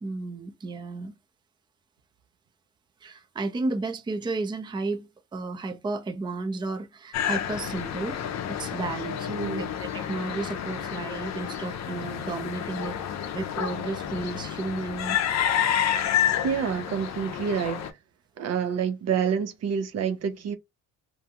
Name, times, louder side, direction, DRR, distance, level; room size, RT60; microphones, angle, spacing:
voice 1, 0.0-1.1 3.0-8.2 8.5-9.3 9.5-13.0 13.3-15.2, right 3 dB, 15° right, 0.4 m, -33 dB
sound 1, 7.1-17.9, left 9 dB, 60° left, 0.5 m, -29 dB
voice 2, 9.3-9.7 16.4-17.8 18.4-20.6, right 7 dB, 60° right, 0.6 m, -28 dB
2.6 x 2.3 x 2.7 m
cardioid pair, 90°, 30 cm